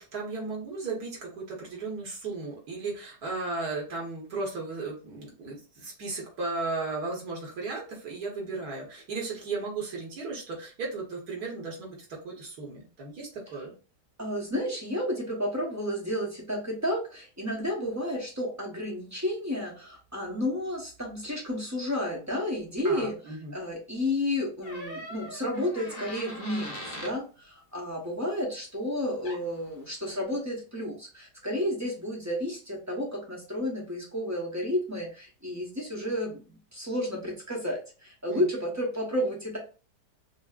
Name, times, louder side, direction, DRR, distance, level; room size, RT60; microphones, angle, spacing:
voice 1, 0.0-12.0 12.2-13.7 22.8-23.5 38.3-38.4, right 3 dB, 65° right, -1 dB, 1.6 m, -35 dB
voice 2, 14.2-23.1 23.5-36.4 36.7-39.6, left 1 dB, 15° right, -1 dB, 0.6 m, -31 dB
Door, 24.6-27.2 29.0-29.1 29.2-29.6, left 1 dB, 55° left, 0.7 m, -40 dB
6.0 x 2.1 x 2.3 m, 0.35 s
omnidirectional pair, 1.8 m